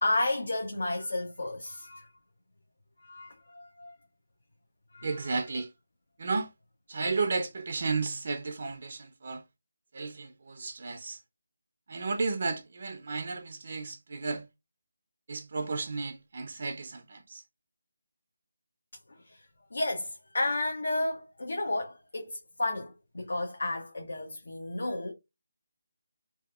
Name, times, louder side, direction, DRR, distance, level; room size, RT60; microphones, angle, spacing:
voice 1, 0.0-2.1 3.0-3.9 4.9-5.3 7.0-7.1 19.2-19.4 19.7-25.1, left 2 dB, 70° left, 0.5 m, -32 dB
voice 2, 5.0-5.7 6.2-6.5 6.9-9.4 9.9-11.2 11.9-14.4 15.3-17.4, right 4 dB, 50° right, 0.4 m, -33 dB
2.7 x 2.3 x 2.3 m
figure-of-eight pair, 160°, 0 cm